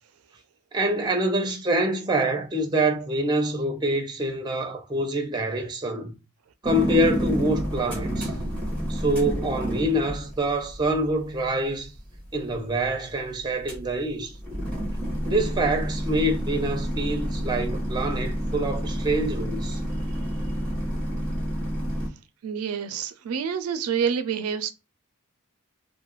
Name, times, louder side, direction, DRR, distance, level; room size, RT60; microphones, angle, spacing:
voice 1, 0.7-6.1 6.6-8.3 8.9-11.9 12.3-14.3 15.3-19.8, right 1 dB, 20° right, 0.5 m, -26 dB
sound 1, 6.6-22.1, equal, 5° left, 0.8 m, -29 dB
voice 2, 22.4-24.7, right 7 dB, 80° right, 0.4 m, -27 dB
2.3 x 2.1 x 2.9 m
head